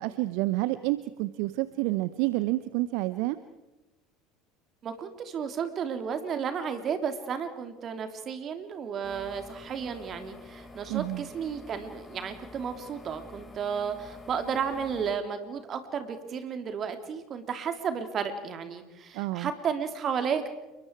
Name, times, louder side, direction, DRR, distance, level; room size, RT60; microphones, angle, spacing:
voice 1, 0.0-3.4 10.9-11.3 19.1-19.5, right 18 dB, 60° right, 14 dB, 0.8 m, -29 dB
voice 2, 4.8-20.5, right 7 dB, 40° right, 7 dB, 3.2 m, -33 dB
sound 1, 9.0-15.1, left 2 dB, 20° left, 3.9 m, -48 dB
29.0 x 23.0 x 4.7 m, 1.0 s
figure-of-eight pair, 70°, 0 cm